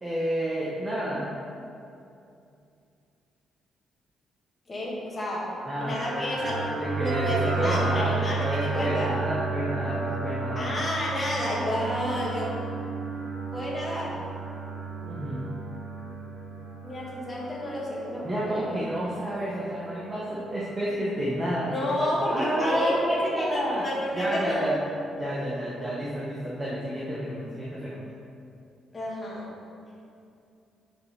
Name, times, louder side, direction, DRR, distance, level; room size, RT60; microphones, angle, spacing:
voice 1, 0.0-1.3 5.7-6.3 6.8-10.7 15.0-15.5 18.2-23.8 24.1-24.8 25.1-28.0, equal, 20° right, -7 dB, 1.0 m, -30 dB
voice 2, 4.7-5.5 5.8-6.7 7.0-9.2 10.6-12.5 13.5-14.2 16.8-18.7 21.7-24.7 28.9-29.5, left 1 dB, 25° left, -6 dB, 1.8 m, -30 dB
sound 1, 5.5-25.2, right 3 dB, 60° right, 1.0 m, -34 dB
10.0 x 4.9 x 3.5 m, 2.5 s
cardioid pair, 145°, 0 cm